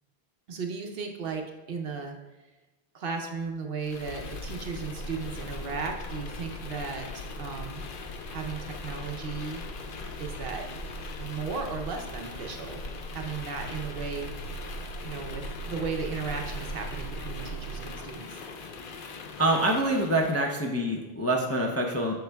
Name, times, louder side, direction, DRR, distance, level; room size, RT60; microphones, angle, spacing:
voice 1, 0.5-1.4 1.7-2.1 2.9-7.1 7.4-7.8 8.3-9.6 10.2-10.7 11.2-12.8 13.1-14.3 15.0-18.4, right 5 dB, 65° right, 3 dB, 0.9 m, -35 dB
sound 1, 3.8-20.5, left 1 dB, 60° left, 0.7 m, -39 dB
voice 2, 19.4-22.2, right 1 dB, 20° left, -1 dB, 0.4 m, -26 dB
7.8 x 5.7 x 2.2 m, 1.2 s
omnidirectional pair, 1.1 m